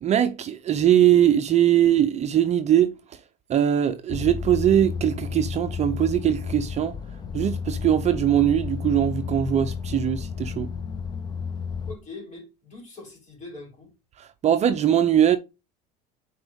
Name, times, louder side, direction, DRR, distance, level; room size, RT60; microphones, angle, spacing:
voice 1, 0.0-2.9 3.5-7.0 7.3-10.7 14.2-15.4, right 10 dB, 35° right, 0.6 m, -21 dB
sound 1, 4.1-12.0, left 6 dB, 20° left, 0.6 m, -32 dB
voice 2, 11.8-13.9, left 3 dB, 35° left, 4.2 m, -42 dB
7.5 x 4.6 x 3.6 m
supercardioid pair, 110°, 20 cm